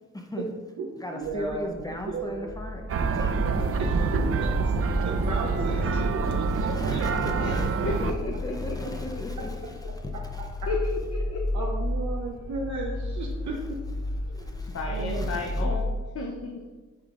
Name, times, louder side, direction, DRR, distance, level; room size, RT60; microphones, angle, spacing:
voice 1, 0.1-0.5 1.0-2.8 3.1-3.7 6.2-10.0 10.3-10.4 14.3-14.8 15.1-15.6, equal, 10° left, 1 dB, 0.7 m, -37 dB
voice 2, 0.8-1.7 2.1-2.5 3.8-4.5 5.0-6.5 6.8-7.3 11.5-13.6 14.2-14.6 14.9-15.4 15.7-15.8, right 3 dB, 75° right, -1 dB, 0.8 m, -34 dB
sound 1, 1.2-15.9, left 1 dB, 70° left, 1.2 m, -33 dB
sound 2, 2.9-8.1, right 5 dB, 50° right, 0.5 m, -26 dB
voice 3, 7.4-8.8 10.7-11.7 14.7-15.8 16.1-16.6, left 3 dB, 55° left, -1 dB, 0.8 m, -33 dB
8.5 x 5.0 x 2.5 m, 1.3 s
wide cardioid pair, 110°, 29 cm